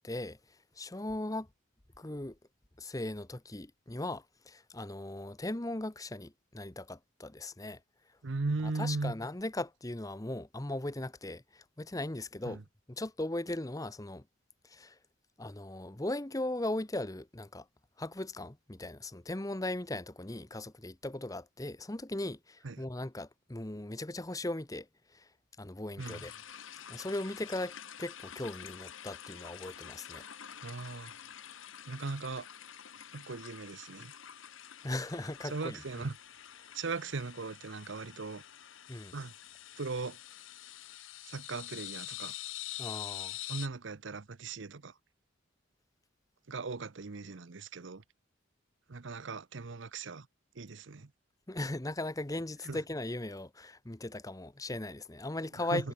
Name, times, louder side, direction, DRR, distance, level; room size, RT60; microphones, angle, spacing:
voice 1, 0.0-1.5 2.0-2.4 2.8-7.8 8.6-12.6 12.9-14.2 14.6-15.0 15.4-17.7 18.0-25.3 25.6-26.3 26.9-30.2 34.8-36.1 38.9-39.1 42.8-43.4 51.5-55.9, left 1 dB, 15° left, 0.9 m, -38 dB
voice 2, 8.2-9.1 12.4-12.6 22.6-22.8 26.0-26.2 30.6-31.1 31.9-32.5 33.1-34.1 35.4-36.2 36.7-38.4 39.1-39.3 39.8-40.2 41.2-42.3 43.5-45.0 46.5-48.0 48.9-50.3 50.5-51.1 52.6-52.8 55.7-55.9, right 3 dB, 65° right, 0.8 m, -38 dB
sound 1, 26.0-43.7, left 12 dB, 75° left, 1.2 m, -46 dB
head